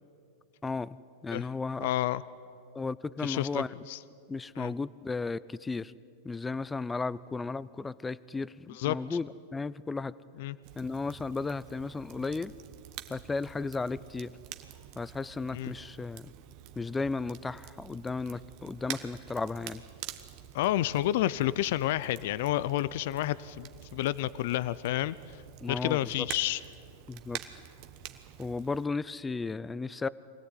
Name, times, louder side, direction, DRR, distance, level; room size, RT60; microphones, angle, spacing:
voice 1, 0.6-1.0 1.2-1.9 2.7-3.7 4.3-5.9 6.2-10.1 10.8-12.5 13.1-14.4 15.0-16.3 16.8-19.8 25.6-26.0 27.1-27.4 28.4-30.1, left 4 dB, 15° left, 19 dB, 0.5 m, -34 dB
voice 2, 1.8-2.2 3.2-4.0 4.6-4.7 8.7-9.2 10.4-10.6 15.5-15.7 20.5-25.2 25.7-26.6, left 14 dB, 65° left, 18 dB, 0.5 m, -30 dB
Crackle, 10.6-28.9, right 12 dB, 50° right, 1.3 m, -47 dB
24.0 x 16.5 x 9.2 m, 2.5 s
hypercardioid pair, 115°, 0 cm